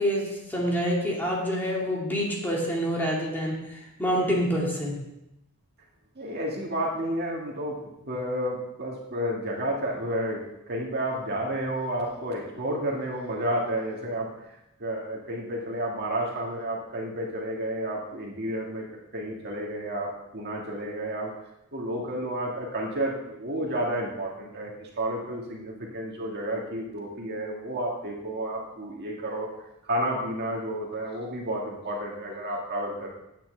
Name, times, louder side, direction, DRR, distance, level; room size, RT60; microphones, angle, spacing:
voice 1, 0.0-5.0, equal, 10° left, -3 dB, 2.2 m, -27 dB
voice 2, 6.2-14.3 14.8-18.9 19.1-21.3 21.7-29.5 29.8-33.1, right 1 dB, 45° right, -2 dB, 2.0 m, -31 dB
9.1 x 5.9 x 7.6 m, 0.88 s
head